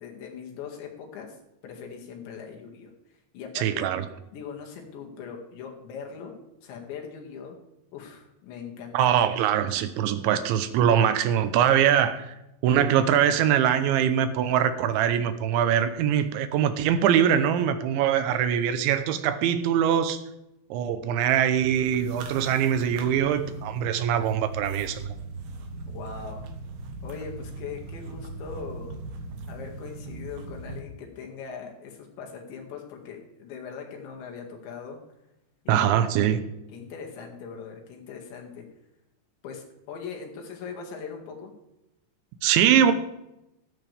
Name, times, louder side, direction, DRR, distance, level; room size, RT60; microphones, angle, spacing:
voice 1, 0.0-1.4 1.6-2.9 3.3-3.8 4.3-6.4 6.6-7.6 7.9-9.3 25.9-26.5 27.0-29.0 29.5-35.0 35.7-35.9 36.2-36.4 36.7-38.7 39.4-41.5, left 6 dB, 75° left, 1 dB, 4.2 m, -40 dB
voice 2, 3.6-4.1 8.9-12.4 12.6-20.2 20.7-25.1 35.7-36.4 42.4-42.9, right 9 dB, 80° right, 10 dB, 3.1 m, -23 dB
sound 1, 21.6-30.8, right 3 dB, 65° right, 2.9 m, -39 dB
14.5 x 13.0 x 3.4 m, 0.90 s
omnidirectional pair, 5.4 m